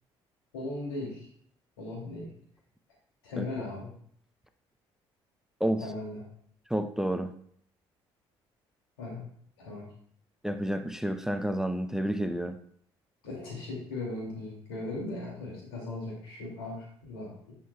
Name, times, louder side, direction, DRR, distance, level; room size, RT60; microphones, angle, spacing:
voice 1, 0.5-1.3 1.8-2.3 3.2-3.9 5.8-6.2 9.0-9.2 9.6-9.9 13.2-17.5, left 2 dB, 90° left, -2 dB, 2.4 m, -38 dB
voice 2, 6.7-7.3 10.4-12.6, right 1 dB, 5° right, 9 dB, 0.6 m, -30 dB
11.0 x 5.7 x 2.3 m, 0.62 s
hypercardioid pair, 55°, 13 cm